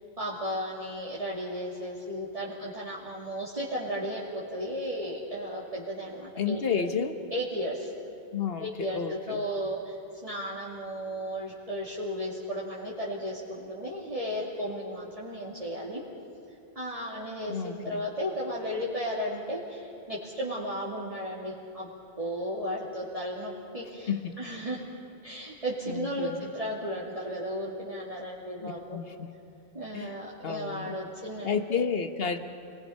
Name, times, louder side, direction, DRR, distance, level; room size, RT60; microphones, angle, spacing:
voice 1, 0.0-6.9 7.3-7.9 8.6-10.0 10.2-16.0 16.7-21.9 22.2-24.1 24.4-24.8 25.2-29.0 29.7-31.8, equal, 35° right, -7 dB, 2.5 m, -34 dB
voice 2, 6.4-7.2 8.3-9.4 17.5-18.0 24.1-24.4 25.9-26.4 28.6-29.3 29.9-31.0 31.4-32.4, left 6 dB, 70° left, 8 dB, 1.4 m, -31 dB
29.0 x 21.5 x 5.7 m, 2.5 s
omnidirectional pair, 1.0 m